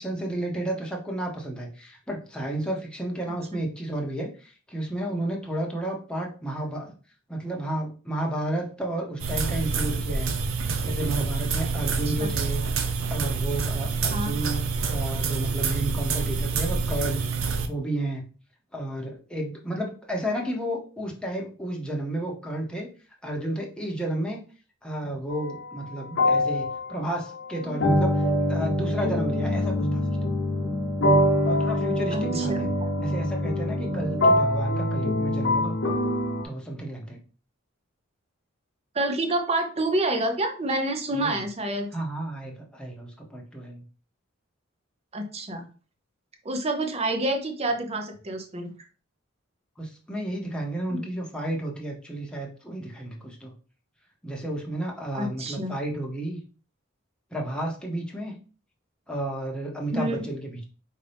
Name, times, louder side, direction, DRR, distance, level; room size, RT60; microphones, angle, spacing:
voice 1, 0.0-6.9 7.3-10.3 10.8-12.6 13.1-14.6 14.9-17.2 17.7-18.3 18.7-22.9 23.2-24.4 24.8-30.3 31.4-32.7 33.0-35.8 36.4-37.2 41.1-41.4 41.9-43.8 49.8-53.5 54.2-56.4 57.3-58.3 59.1-60.6, right 1 dB, 5° left, -1 dB, 0.9 m, -32 dB
sound 1, 9.2-17.7, right 4 dB, 85° right, 0.6 m, -27 dB
sound 2, 25.3-25.5 26.2-36.4, left 1 dB, 65° left, 0.8 m, -24 dB
voice 2, 32.1-32.7 38.9-41.9 45.1-45.6 46.4-48.7 50.9-51.0 55.1-55.7 59.9-60.3, right 1 dB, 30° right, 5 dB, 0.7 m, -28 dB
4.9 x 2.8 x 3.4 m, 0.37 s
head